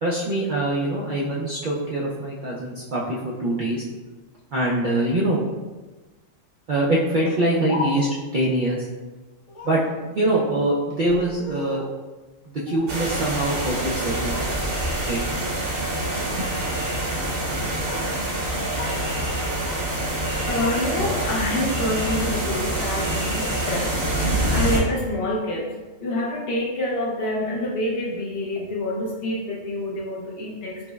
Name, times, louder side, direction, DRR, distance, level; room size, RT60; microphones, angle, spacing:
voice 1, 0.0-3.8 4.5-5.4 6.7-8.1 8.3-8.9 9.6-9.8 10.1-11.8 12.7-14.3 15.1-15.2 16.3-16.5, right 1 dB, 70° right, -5 dB, 0.4 m, -23 dB
Speech, 7.2-8.3 9.5-9.9 10.9-12.0 12.7-13.5 13.8-14.5 14.9-15.3 15.9-16.3 17.4-18.1 18.4-19.0 19.3-19.9 20.2-21.5, left 2 dB, 75° left, 1.1 m, -36 dB
sound 1, 12.9-24.8, right 1 dB, 50° right, 0.9 m, -26 dB
voice 2, 20.5-30.9, left 1 dB, 60° left, -3 dB, 0.7 m, -27 dB
5.9 x 2.0 x 2.3 m, 1.2 s
omnidirectional pair, 1.4 m